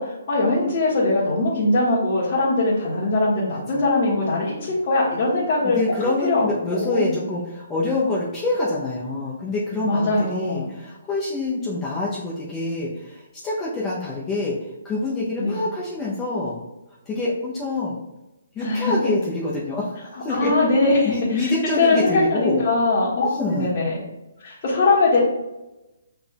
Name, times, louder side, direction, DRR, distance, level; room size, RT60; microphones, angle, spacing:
voice 1, 0.0-5.8 6.2-6.4 6.7-7.1 9.8-10.6 15.4-15.6 18.6-19.1 20.3-21.1 21.8-23.9 24.4-25.2, left 2 dB, 40° left, -11 dB, 1.6 m, -21 dB
voice 2, 3.5-4.4 5.6-16.6 17.1-18.0 18.5-20.5 21.0-22.6 23.2-23.7, left 2 dB, 15° left, -6 dB, 0.8 m, -26 dB
6.1 x 3.4 x 2.3 m, 0.99 s
hypercardioid pair, 150°, 0 cm